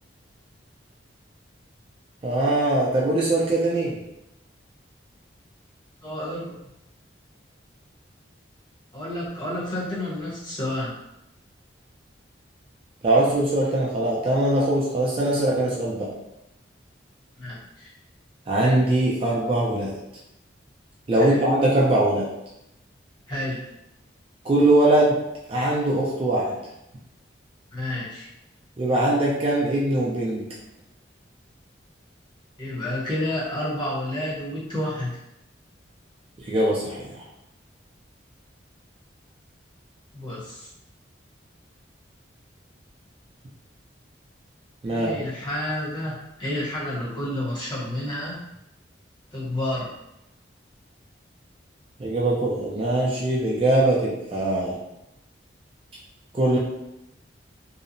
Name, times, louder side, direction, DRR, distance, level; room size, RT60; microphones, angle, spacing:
voice 1, 2.2-4.0 13.0-16.1 18.5-19.9 21.1-22.3 24.4-25.2 25.5-26.5 28.8-30.4 36.5-37.2 44.8-45.2 52.0-54.8 56.3-56.6, right 1 dB, 30° right, -5 dB, 0.3 m, -21 dB
voice 2, 6.0-6.6 8.9-11.0 17.4-17.9 21.2-21.4 23.3-23.6 27.7-28.3 32.6-35.2 40.1-40.7 44.9-48.4 49.3-49.9, left 1 dB, 25° left, -7 dB, 0.8 m, -30 dB
2.7 x 2.0 x 2.5 m, 0.89 s
head